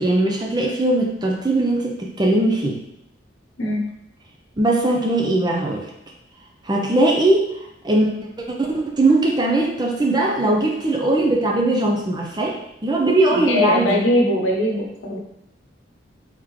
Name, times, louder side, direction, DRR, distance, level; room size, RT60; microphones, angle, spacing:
voice 1, 0.0-2.8 4.6-5.8 6.6-7.5 7.8-14.0, right 2 dB, 20° right, 0 dB, 0.5 m, -20 dB
voice 2, 13.3-15.2, left 1 dB, 90° left, 0 dB, 0.8 m, -21 dB
3.6 x 3.5 x 3.1 m, 0.82 s
head